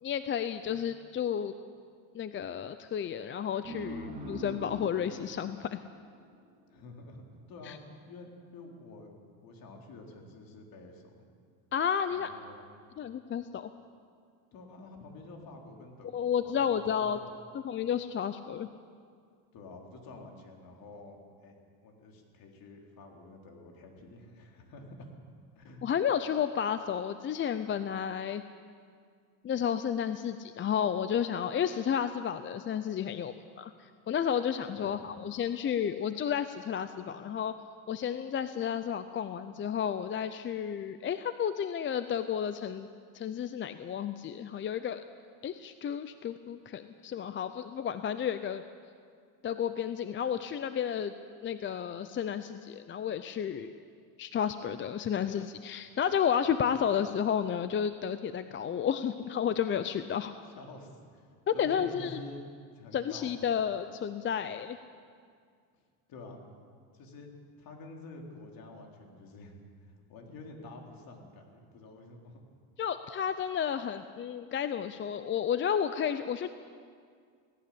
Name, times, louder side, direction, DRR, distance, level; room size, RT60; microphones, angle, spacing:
voice 1, 0.0-1.5 2.1-5.8 7.7-7.8 11.7-12.3 13.0-13.7 16.1-17.2 17.6-18.7 25.8-28.4 29.4-33.7 34.1-37.6 37.9-42.9 43.1-45.0 45.4-48.6 49.4-51.1 51.4-53.8 54.2-60.3 61.5-62.2 62.9-64.8 72.8-76.5, left 8 dB, 30° left, 11 dB, 0.6 m, -32 dB
sound 1, 3.6-6.8, right 2 dB, 15° right, 3.7 m, -43 dB
voice 2, 6.7-7.2 7.5-9.2 9.4-11.2 12.1-12.7 14.5-17.3 19.5-21.5 21.8-25.1 25.6-25.8 34.7-35.0 60.6-62.4 62.7-63.5 66.1-66.4 66.9-67.3 67.6-69.6 70.1-72.4, left 2 dB, 55° left, 1 dB, 3.9 m, -49 dB
18.0 x 17.5 x 8.6 m, 2.1 s
cardioid pair, 125°, 43 cm